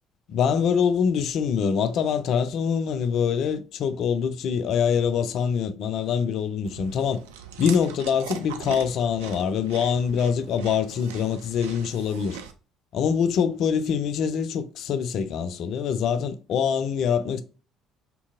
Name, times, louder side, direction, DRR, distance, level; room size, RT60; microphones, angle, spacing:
voice 1, 0.3-7.2 7.6-12.4 12.9-17.4, left 7 dB, 55° left, 0.3 m, -24 dB
Chewing mastication, 6.7-12.5, right 8 dB, 70° right, 0.3 m, -41 dB
2.8 x 2.6 x 2.4 m
figure-of-eight pair, 55°, 0 cm